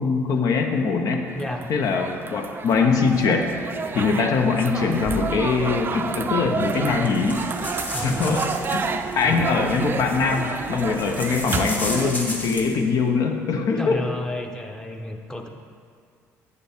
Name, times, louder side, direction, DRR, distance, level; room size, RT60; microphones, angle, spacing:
voice 1, 0.0-1.2 1.7-3.5 3.9-7.5 8.0-8.4 8.7-8.9 9.2-14.0, left 5 dB, 65° left, 4 dB, 0.9 m, -22 dB
voice 2, 1.3-1.7 7.9-8.3 9.2-9.4 13.8-15.5, left 1 dB, 10° left, 3 dB, 0.8 m, -30 dB
sound 1, 1.3-12.1, right 5 dB, 35° right, 0.4 m, -30 dB
sound 2, 6.6-12.8, left 1 dB, 25° left, 1.3 m, -34 dB
8.2 x 6.8 x 3.6 m, 2.2 s
supercardioid pair, 85°, 6 cm